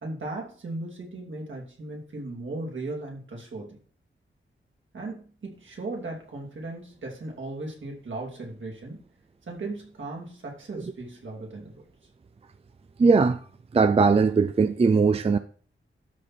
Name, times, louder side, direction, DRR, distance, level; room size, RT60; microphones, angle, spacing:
voice 1, 0.0-3.8 4.9-9.0 9.5-11.8, right 2 dB, 70° right, 2.9 m, -37 dB
voice 2, 13.0-13.4 13.7-15.4, right 4 dB, 30° right, 0.4 m, -19 dB
12.5 x 4.5 x 4.3 m
wide cardioid pair, 120°, 21 cm